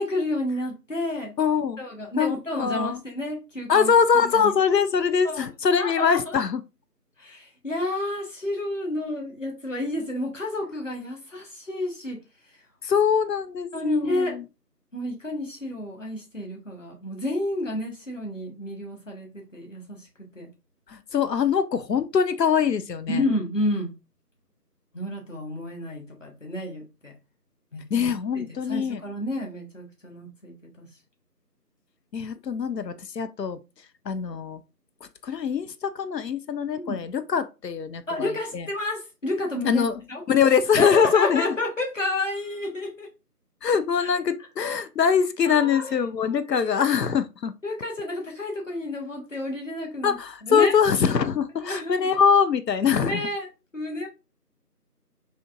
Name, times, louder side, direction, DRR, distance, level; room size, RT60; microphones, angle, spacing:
voice 1, 0.0-1.3 1.8-3.9 4.4-4.5 5.2-5.5 5.7-6.4 7.2-12.2 13.7-14.4 14.9-20.1 20.3-20.5 23.1-23.9 24.9-27.1 27.7-28.1 28.3-30.9 36.7-37.0 38.1-40.2 40.8-43.1 44.0-44.1 45.4-46.0 46.3-46.8 47.6-50.2 50.4-50.7 51.6-52.1 53.0-53.5 53.7-54.1, left 1 dB, 50° left, 1.2 m, -30 dB
voice 2, 1.4-1.8 2.2-2.3 2.6-3.0 3.7-6.6 12.8-14.4 20.9-23.3 27.9-29.0 32.1-33.6 34.1-34.6 35.2-38.7 39.6-40.0 40.3-41.5 43.6-47.5 50.0-53.2, left 6 dB, 85° left, 0.6 m, -23 dB
4.3 x 2.8 x 2.4 m
figure-of-eight pair, 175°, 48 cm